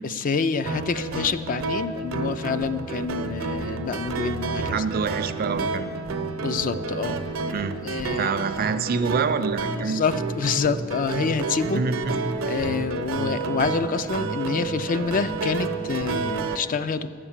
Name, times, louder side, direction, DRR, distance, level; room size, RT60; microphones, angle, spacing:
voice 1, 0.0-4.8 6.4-7.2 7.8-8.3 9.8-11.9 12.4-17.1, left 5 dB, 40° left, 12 dB, 0.4 m, -27 dB
sound 1, 0.7-16.6, right 4 dB, 80° right, 0.7 m, -30 dB
voice 2, 4.7-6.0 7.5-7.8 8.2-10.0 11.7-12.2, right 5 dB, 45° right, 11 dB, 0.5 m, -26 dB
11.0 x 7.7 x 7.3 m, 2.2 s
head